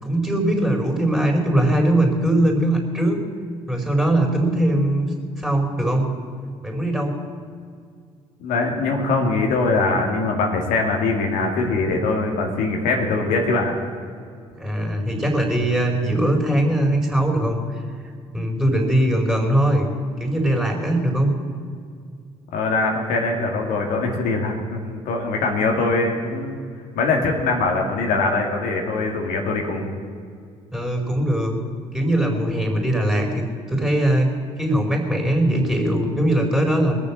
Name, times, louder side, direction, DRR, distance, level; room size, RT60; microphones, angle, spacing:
voice 1, 0.0-3.2 3.7-6.1 6.6-7.2 14.5-17.8 18.3-19.9 20.2-21.3 30.7-31.6 31.9-33.4 33.7-37.0, right 1 dB, 5° right, 1 dB, 4.5 m, -21 dB
voice 2, 8.4-13.7 22.5-26.6 27.0-29.9, left 3 dB, 75° left, 1 dB, 2.2 m, -22 dB
20.5 x 7.1 x 7.4 m, 2.2 s
hypercardioid pair, 65°, 15 cm